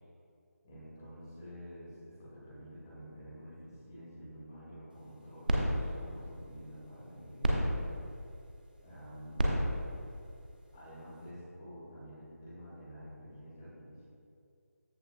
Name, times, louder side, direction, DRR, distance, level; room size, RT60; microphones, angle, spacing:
voice 1, 0.6-7.8 8.8-9.5 10.7-14.0, equal, 10° left, -11 dB, 1.8 m, -49 dB
sound 1, 4.9-11.3, equal, 30° right, 0.8 m, -35 dB
14.0 x 5.6 x 2.4 m, 2.5 s
figure-of-eight pair, 180°, 9 cm